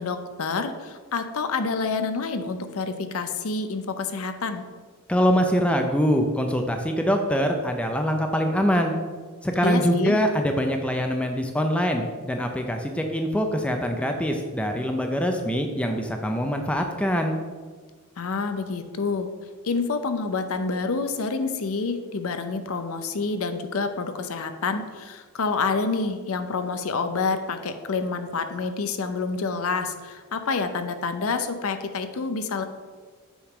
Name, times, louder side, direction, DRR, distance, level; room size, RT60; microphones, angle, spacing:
voice 1, 0.0-4.6 9.6-10.2 18.2-19.3 19.6-32.6, left 4 dB, 70° left, 9 dB, 0.5 m, -28 dB
voice 2, 5.1-8.9 9.4-17.3, equal, 5° left, 4 dB, 0.4 m, -24 dB
7.0 x 3.7 x 4.9 m, 1.5 s
head